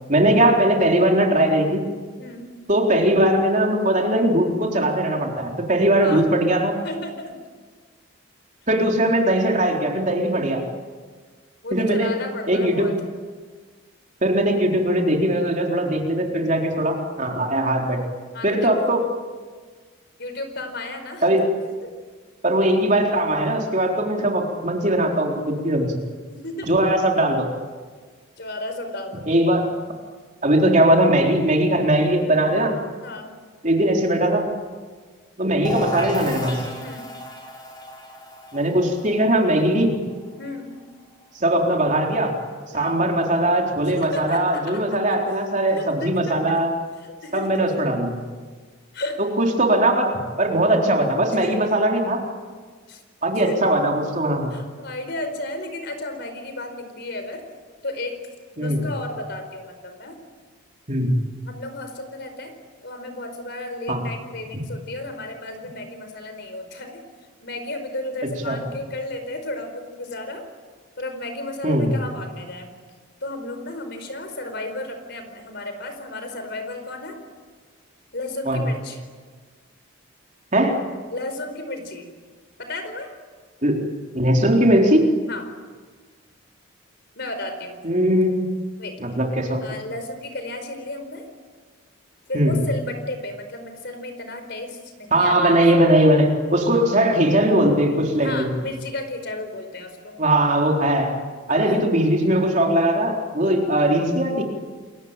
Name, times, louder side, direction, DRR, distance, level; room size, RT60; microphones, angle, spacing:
voice 1, 0.1-1.9 2.7-6.8 8.7-10.6 11.7-12.1 12.5-12.9 14.2-18.0 18.4-19.0 21.2-21.5 22.4-26.0 26.7-27.5 29.3-29.7 30.4-32.7 33.6-34.5 35.4-36.6 38.5-39.9 41.3-42.4 42.7-46.7 47.3-48.2 49.4-50.1 50.4-52.2 53.2-54.5 58.6-58.8 60.9-61.2 63.9-64.0 68.4-68.6 71.6-71.9 78.5-78.6 80.5-80.8 83.6-83.8 84.1-85.1 87.8-88.4 89.0-89.6 92.3-92.6 95.1-98.5 100.2-101.2 101.5-104.4, right 1 dB, 35° right, 1 dB, 4.0 m, -20 dB
voice 2, 2.2-2.5 6.0-6.2 6.8-7.3 11.6-12.9 18.3-19.0 20.2-21.2 26.3-26.8 28.4-29.3 33.0-33.4 36.8-37.0 40.4-40.8 42.7-43.0 44.0-45.0 45.7-46.6 47.0-47.6 48.9-49.2 51.2-51.6 52.9-53.0 53.4-53.6 54.5-57.4 57.8-58.1 58.5-60.2 61.4-62.5 62.8-67.0 67.4-70.5 71.0-72.9 73.2-77.2 78.1-79.0 81.1-82.1 82.6-83.1 85.3-85.4 87.1-87.8 88.8-89.0 89.6-91.3 92.3-96.0 98.2-100.2 101.5-101.7, left 2 dB, 55° left, 7 dB, 4.8 m, -33 dB
sound 1, 35.6-41.2, left 1 dB, 20° left, 5.8 m, -34 dB
29.0 x 23.0 x 9.0 m, 1.5 s
head